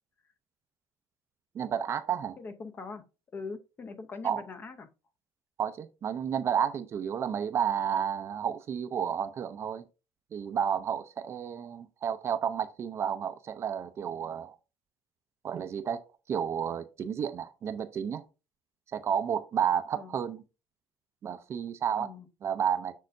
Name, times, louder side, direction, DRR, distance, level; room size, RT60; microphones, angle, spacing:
voice 1, 1.5-2.4 4.2-4.4 5.6-9.8 10.3-14.5 15.4-16.0 16.3-18.2 18.9-20.4 21.2-22.1 22.4-22.9, right 8 dB, 30° right, 0.5 m, -31 dB
voice 2, 2.4-3.0 3.3-4.9 19.9-20.1 22.0-22.3, left 4 dB, 25° left, 0.6 m, -42 dB
6.4 x 6.3 x 2.6 m
cardioid pair, 160°, 8 cm